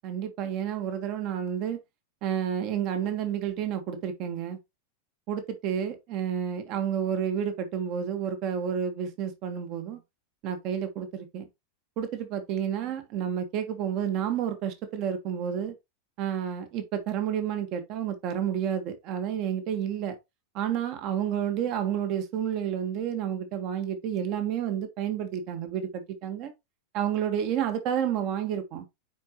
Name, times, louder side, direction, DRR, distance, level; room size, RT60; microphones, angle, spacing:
voice 1, 0.0-1.8 2.2-4.6 5.3-10.0 10.4-11.5 12.0-15.8 16.2-20.2 20.5-26.5 26.9-28.9, right 9 dB, 40° right, 1.6 m, -30 dB
9.4 x 4.8 x 3.0 m
figure-of-eight pair, 90°, 0 cm